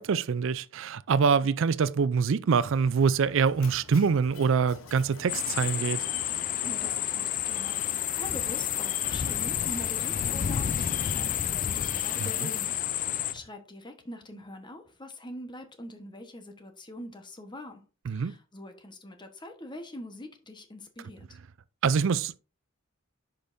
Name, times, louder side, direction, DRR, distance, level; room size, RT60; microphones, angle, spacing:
voice 1, 0.0-6.0 12.2-12.5 18.1-18.3 21.8-22.4, right 5 dB, 65° right, 0.4 m, -25 dB
Mechanisms, 2.6-13.4, left 3 dB, 85° left, 1.0 m, -49 dB
sound 1, 5.3-13.3, left 10 dB, 40° left, 0.4 m, -30 dB
voice 2, 6.6-17.8 18.1-21.4, left 1 dB, 20° left, 1.1 m, -44 dB
10.0 x 5.2 x 2.6 m
head